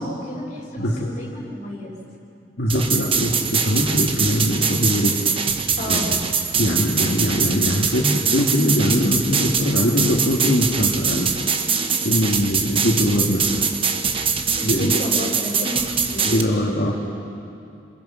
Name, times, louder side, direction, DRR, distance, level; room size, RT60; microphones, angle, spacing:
voice 1, 0.0-1.9 5.8-6.1 14.6-16.4, left 1 dB, 45° left, -4 dB, 6.8 m, -31 dB
voice 2, 0.8-1.1 2.6-5.2 5.9-6.0 6.6-11.3 12.0-13.6 14.6-15.0 16.2-16.9, equal, 65° left, -5 dB, 2.4 m, -21 dB
sound 1, 2.7-16.4, right 6 dB, 30° right, 1.2 m, -23 dB
30.0 x 21.5 x 5.9 m, 2.5 s
head